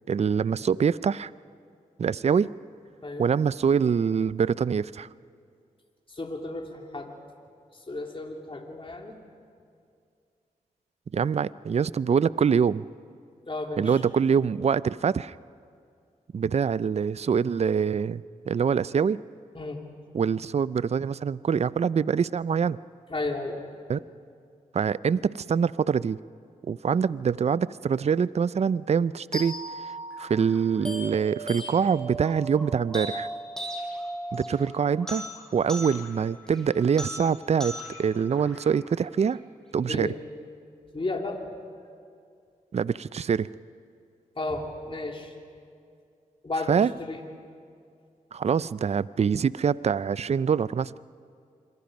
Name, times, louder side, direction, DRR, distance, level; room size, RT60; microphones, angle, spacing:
voice 1, 0.1-1.3 2.0-2.5 3.2-5.1 11.1-12.9 13.8-15.4 16.3-19.2 20.1-22.8 23.9-24.0 24.7-26.2 26.7-29.6 29.8-33.3 34.3-35.2 35.5-39.4 39.7-40.1 42.7-43.5 46.7-46.9 48.3-50.9, right 6 dB, 45° right, 19 dB, 0.4 m, -25 dB
voice 2, 6.1-7.1 7.9-9.2 13.5-14.0 19.5-19.8 23.1-23.6 39.8-40.2 40.9-41.5 44.3-45.3 46.4-47.2, left 2 dB, 35° left, 2 dB, 3.0 m, -33 dB
sound 1, 29.3-39.3, right 1 dB, 5° left, 7.0 m, -38 dB
27.0 x 22.5 x 5.3 m, 2.3 s
cardioid pair, 50°, 15 cm